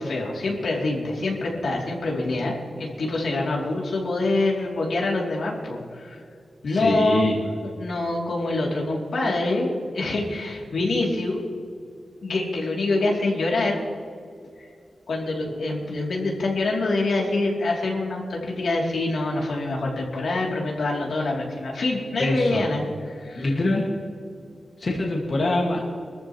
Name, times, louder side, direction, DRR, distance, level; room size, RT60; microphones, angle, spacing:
voice 1, 0.0-6.2 6.6-7.2 7.8-11.4 12.2-13.8 15.1-23.5, left 2 dB, 80° left, -2 dB, 2.9 m, -25 dB
voice 2, 6.6-7.4 22.2-22.7 23.3-23.9 24.8-25.8, left 2 dB, 45° left, -1 dB, 1.8 m, -24 dB
23.0 x 14.0 x 3.1 m, 2.3 s
wide cardioid pair, 170°, 0 cm